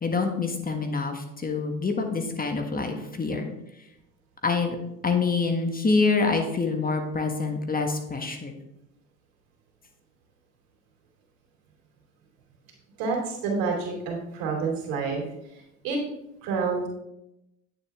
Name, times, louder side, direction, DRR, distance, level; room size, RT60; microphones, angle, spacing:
voice 1, 0.0-3.5 4.4-4.8 5.0-8.5, left 4 dB, 25° left, 5 dB, 1.5 m, -26 dB
voice 2, 13.0-15.2 15.8-16.0 16.4-16.9, right 4 dB, 70° right, 0 dB, 2.8 m, -28 dB
9.1 x 7.4 x 3.5 m, 0.86 s
supercardioid pair, 75°, 36 cm